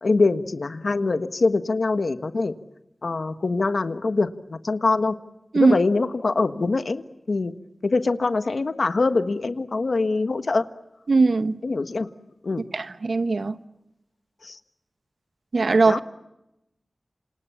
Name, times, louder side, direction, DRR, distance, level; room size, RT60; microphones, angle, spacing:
voice 1, 0.0-2.5 3.0-5.1 5.5-7.5 7.8-10.6 11.6-12.1 12.4-12.6 14.4-14.6 15.8-16.0, left 3 dB, 70° left, 1.4 m, -24 dB
voice 2, 11.1-11.6 12.7-13.6 15.5-16.0, right 3 dB, 75° right, 1.0 m, -19 dB
28.0 x 28.0 x 7.1 m
wide cardioid pair, 65°, 0 cm